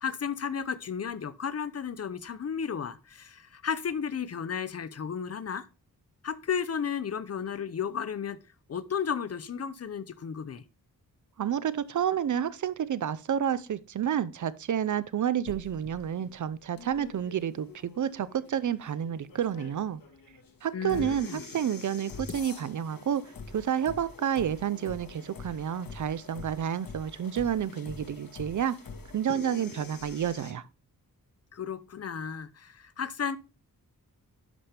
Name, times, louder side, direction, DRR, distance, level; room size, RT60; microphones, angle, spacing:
voice 1, 0.0-5.7 6.2-8.4 8.7-10.6 20.7-21.4 31.5-33.4, left 7 dB, 45° left, 0.5 m, -33 dB
voice 2, 11.4-20.0 20.6-23.2 23.5-28.8 29.1-30.6, right 9 dB, 55° right, 0.5 m, -30 dB
sound 1, 15.5-30.5, left 4 dB, 70° left, 1.6 m, -45 dB
11.0 x 5.8 x 3.3 m
wide cardioid pair, 150°, 36 cm